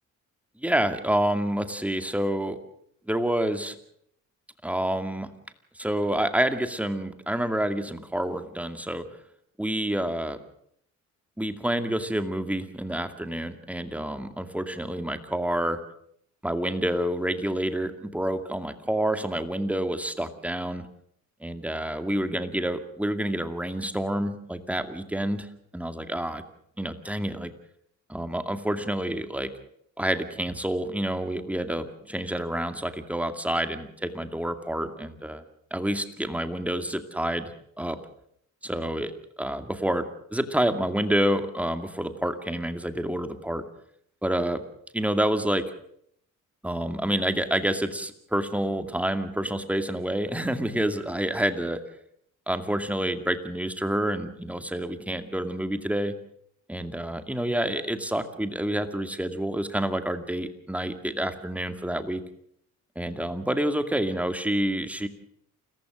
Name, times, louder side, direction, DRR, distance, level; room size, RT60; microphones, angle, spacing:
voice 1, 0.6-2.6 3.1-3.8 4.6-5.3 5.7-9.1 9.6-10.4 11.4-15.8 16.4-20.9 21.4-25.5 25.7-26.4 26.8-27.5 28.1-29.5 30.0-35.4 35.7-38.0 38.6-39.1 39.4-43.6 44.2-44.6 44.9-45.7 46.6-51.8 52.5-56.1 56.7-62.2 63.0-65.1, right 1 dB, 5° right, 8 dB, 2.3 m, -28 dB
28.5 x 15.0 x 6.4 m, 0.68 s
cardioid pair, 90°, 30 cm